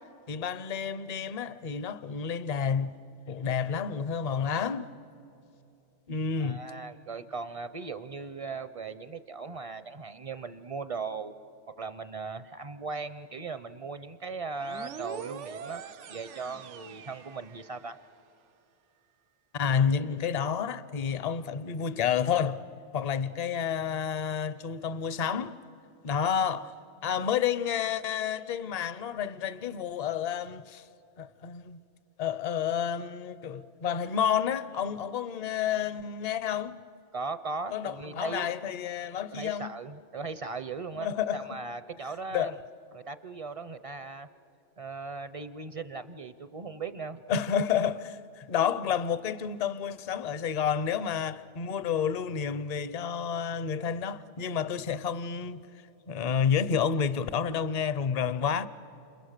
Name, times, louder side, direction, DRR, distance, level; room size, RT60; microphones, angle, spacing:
voice 1, 0.3-2.9 3.3-4.9 6.1-6.6 19.5-22.6 22.9-25.5 26.0-26.7 27.0-30.9 31.2-31.8 32.2-36.8 37.7-39.7 40.9-41.6 42.3-42.6 47.3-55.7 56.1-58.7, left 7 dB, 45° left, 0.6 m, -30 dB
voice 2, 6.4-11.3 11.8-18.0 37.1-38.6 39.3-42.6 42.9-44.3 44.8-47.2, right 4 dB, 40° right, 0.5 m, -38 dB
sound 1, 14.6-18.1, right 8 dB, 85° right, 1.1 m, -43 dB
29.5 x 27.5 x 6.6 m
omnidirectional pair, 1.2 m